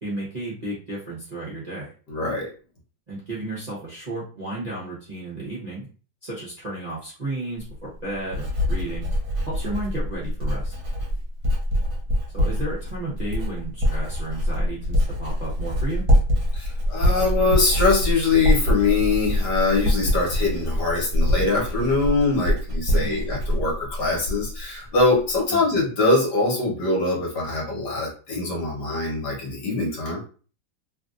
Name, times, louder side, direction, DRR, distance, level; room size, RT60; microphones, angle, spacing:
voice 1, 0.0-1.9 3.1-5.9 6.2-9.1 9.5-10.7 12.3-16.1 22.9-23.2 25.5-25.7, right 2 dB, 35° right, -9 dB, 0.7 m, -33 dB
voice 2, 2.1-2.5 16.5-30.2, left 3 dB, 60° left, -3 dB, 1.6 m, -23 dB
Writing, 7.6-24.6 24.9-25.4, equal, 50° right, 1.2 m, -24 dB
3.3 x 2.5 x 2.4 m, 0.38 s
omnidirectional pair, 2.1 m